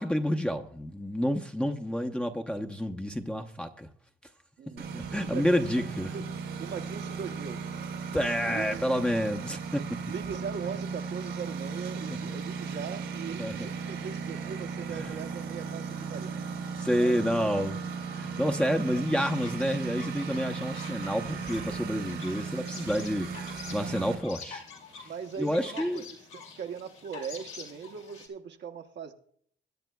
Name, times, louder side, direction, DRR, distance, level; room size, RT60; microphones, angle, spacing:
voice 1, 0.0-3.9 4.9-6.1 8.1-10.0 12.1-12.3 12.7-12.8 13.4-13.7 14.9-15.1 16.8-17.8 18.1-24.6 25.4-26.0, equal, 5° left, 0.7 m, -29 dB
Engine, 4.8-24.1, right 5 dB, 85° right, 2.6 m, -36 dB
voice 2, 5.3-5.9 6.1-6.3 6.6-7.6 8.5-8.9 10.1-16.4 17.0-17.5 25.0-29.1, right 7 dB, 65° right, 0.9 m, -40 dB
sound 1, 19.2-28.3, left 5 dB, 80° left, 2.6 m, -47 dB
21.5 x 9.0 x 2.3 m
cardioid pair, 90°, 20 cm